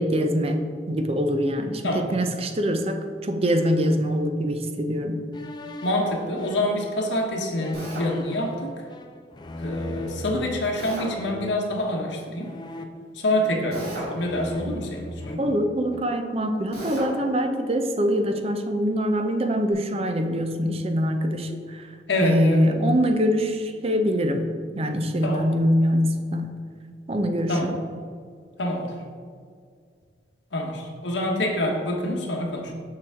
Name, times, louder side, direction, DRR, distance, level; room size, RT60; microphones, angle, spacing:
voice 1, 0.0-5.3 15.4-21.9 22.2-26.5 27.1-27.8, equal, 35° right, 6 dB, 0.5 m, -24 dB
sound 1, 5.3-10.6 11.2-11.7 12.4-13.8 14.2-16.1, left 2 dB, 25° left, 0.4 m, -38 dB
voice 2, 5.8-8.7 9.6-12.5 13.1-15.5 22.1-22.8 25.2-25.5 27.5-27.7 28.6-29.0 30.5-32.7, left 1 dB, 90° left, 0 dB, 1.0 m, -26 dB
Drill, 7.7-8.1 10.8-11.1 13.7-14.2 16.7-17.1, right 1 dB, 60° right, 1.9 m, -34 dB
6.7 x 6.0 x 3.6 m, 2.1 s
head